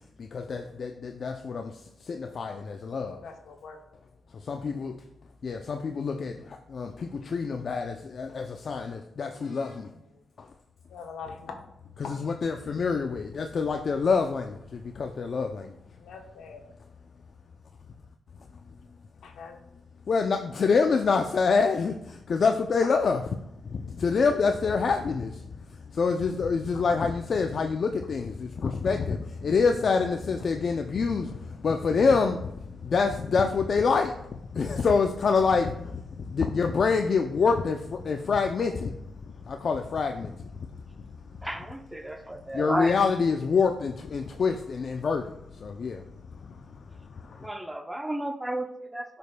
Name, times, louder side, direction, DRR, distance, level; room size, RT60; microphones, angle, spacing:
voice 1, 0.2-1.8 2.0-3.2 4.5-5.0 5.4-9.9 10.4-10.5 12.2-15.7 20.1-23.2 23.6-25.4 25.9-34.1 34.5-39.0 39.5-40.5 42.5-45.3 45.6-46.0 46.7-46.8 47.2-47.5, left 5 dB, 55° left, 5 dB, 0.4 m, -26 dB
voice 2, 3.2-3.8 9.9-10.2 10.9-11.6 12.0-12.1 15.9-16.7 19.2-19.6 22.8-23.1 26.7-27.0 28.6-28.7, left 5 dB, 85° left, 4 dB, 0.9 m, -43 dB
voice 3, 41.4-43.0 47.4-49.2, right 1 dB, 10° right, 8 dB, 0.6 m, -33 dB
10.5 x 5.2 x 2.2 m, 0.83 s
cardioid pair, 90°, 0 cm